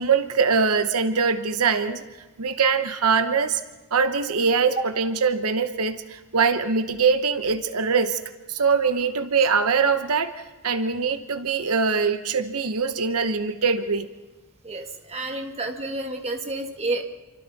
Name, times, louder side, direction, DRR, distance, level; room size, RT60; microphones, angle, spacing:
voice 1, 0.0-2.0 2.4-3.6 3.9-8.2 8.5-10.3 10.6-14.1, right 5 dB, 80° right, 9 dB, 1.0 m, -22 dB
voice 2, 14.6-17.0, right 2 dB, 30° right, 4 dB, 1.6 m, -30 dB
29.0 x 25.0 x 4.1 m, 1.2 s
head